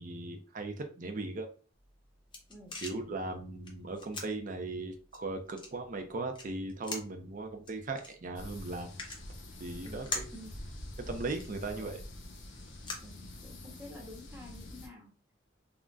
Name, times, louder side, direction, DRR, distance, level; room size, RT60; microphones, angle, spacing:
voice 1, 0.0-1.5 2.8-9.2 9.6-10.3 11.1-12.0, right 2 dB, 45° right, 5 dB, 0.5 m, -38 dB
sound 1, 1.8-13.8, left 3 dB, 25° left, 0.5 m, -46 dB
sound 2, 8.3-14.9, left 1 dB, 80° left, 0.7 m, -46 dB
voice 2, 9.8-10.5 11.7-12.0 13.0-15.1, left 1 dB, 10° right, -2 dB, 0.8 m, -50 dB
3.7 x 2.1 x 2.3 m, 0.38 s
head